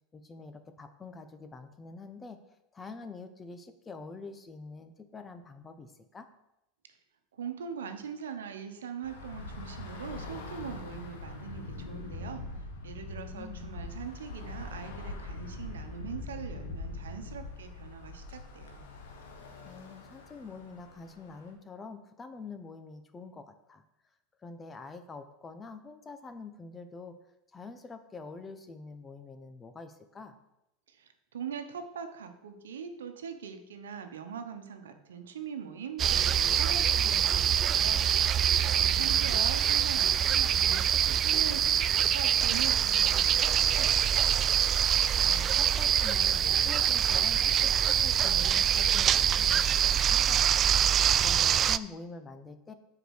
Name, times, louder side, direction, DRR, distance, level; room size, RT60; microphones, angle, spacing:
voice 1, 0.1-2.4 2.7-6.3 13.1-13.7 19.6-23.8 24.4-27.1 27.5-30.3 38.9-39.6 45.1-50.6 51.2-52.7, left 4 dB, 20° left, 9 dB, 1.0 m, -46 dB
voice 2, 7.4-12.4 12.8-18.8 30.9-44.2, right 7 dB, 85° right, 7 dB, 1.0 m, -42 dB
Bus / Traffic noise roadway noise, 9.0-21.5, left 2 dB, 80° left, 1.5 m, -42 dB
sound 1, 36.0-51.8, right 9 dB, 40° right, 0.3 m, -25 dB
7.9 x 4.9 x 6.4 m, 0.89 s
hypercardioid pair, 95°, 0 cm